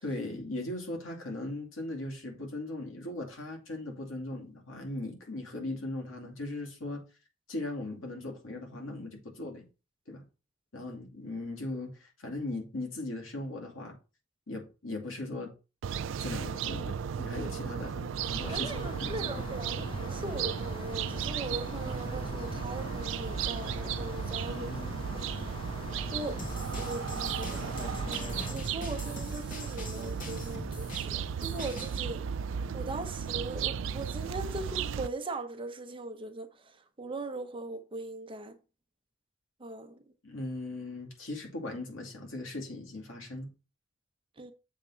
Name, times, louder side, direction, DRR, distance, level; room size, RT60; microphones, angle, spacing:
voice 1, 0.0-7.0 7.5-9.6 10.1-10.2 10.7-13.9 14.5-15.5 16.2-19.5 24.5-25.0 40.2-43.5, left 2 dB, 80° left, 2.4 m, -38 dB
sound 1, 15.8-35.1, right 7 dB, 65° right, 0.4 m, -35 dB
sound 2, 18.2-28.5, left 1 dB, 25° left, 1.2 m, -41 dB
voice 2, 18.4-24.8 25.3-25.8 26.1-26.4 26.7-32.2 32.7-38.6 39.6-40.0 44.4-44.5, right 2 dB, 25° right, 0.8 m, -40 dB
sound 3, 26.4-31.9, left 1 dB, 45° left, 1.9 m, -43 dB
7.3 x 3.6 x 5.6 m
head